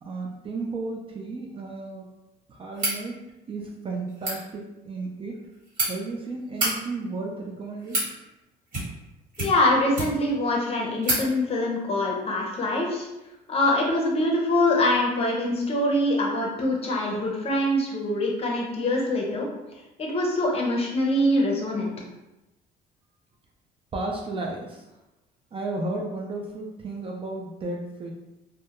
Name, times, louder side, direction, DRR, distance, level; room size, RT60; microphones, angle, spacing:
voice 1, 0.0-2.2 2.5-5.4 5.9-8.1 23.9-24.9 25.5-28.1, right 3 dB, 30° right, 0 dB, 0.4 m, -33 dB
sound 1, 2.7-3.0 4.1-4.4 5.3-5.9 6.4-6.7 7.5-8.1 8.7-9.1 9.3-10.3 10.6-10.7 11.0-11.2, right 1 dB, 50° right, 1.3 m, -28 dB
voice 2, 9.4-13.1 13.5-19.5 20.0-21.9, left 1 dB, 35° left, -1 dB, 0.6 m, -24 dB
2.2 x 2.1 x 2.9 m, 0.97 s
cardioid pair, 110°, 17 cm